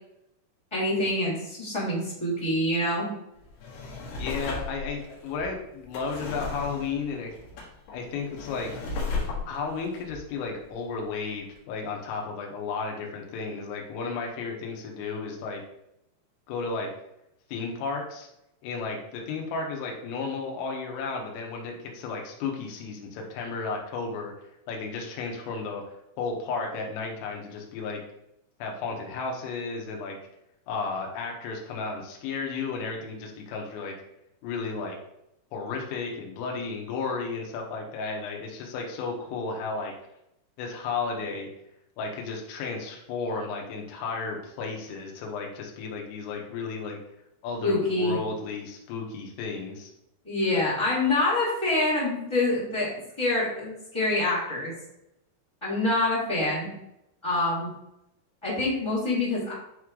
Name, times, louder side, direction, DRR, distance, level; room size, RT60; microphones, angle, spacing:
voice 1, 0.7-3.1 47.6-48.2 50.2-52.9 53.2-54.7 55.6-56.7 57.2-57.7 58.4-59.5, left 2 dB, 25° left, -8 dB, 0.5 m, -26 dB
Drawer open or close, 3.4-11.1 11.5-11.6, left 3 dB, 70° left, 3.6 m, -36 dB
voice 2, 4.2-7.3 7.9-8.7 9.5-15.6 16.5-16.9 17.5-18.3 18.6-24.3 24.7-25.8 26.2-28.0 28.6-30.2 30.7-34.0 34.4-35.0 35.5-39.9 40.6-41.5 42.0-47.0 47.4-49.9, left 4 dB, 85° left, 1 dB, 3.7 m, -33 dB
10.0 x 3.8 x 3.1 m, 0.83 s
omnidirectional pair, 5.7 m